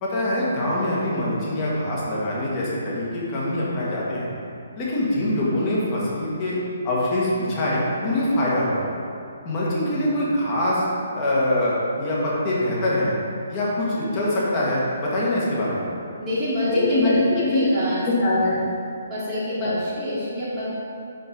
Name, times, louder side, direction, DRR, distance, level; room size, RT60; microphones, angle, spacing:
voice 1, 0.0-4.3 4.8-6.6 6.8-8.9 9.4-10.8 11.1-13.1 13.5-15.9 16.7-17.7 18.0-18.5 19.6-19.7, left 1 dB, 25° left, -7 dB, 1.5 m, -23 dB
voice 2, 16.2-17.2 17.5-18.0 19.1-20.7, equal, 10° right, -12 dB, 1.4 m, -26 dB
5.6 x 5.3 x 3.9 m, 2.6 s
figure-of-eight pair, 135°, 0 cm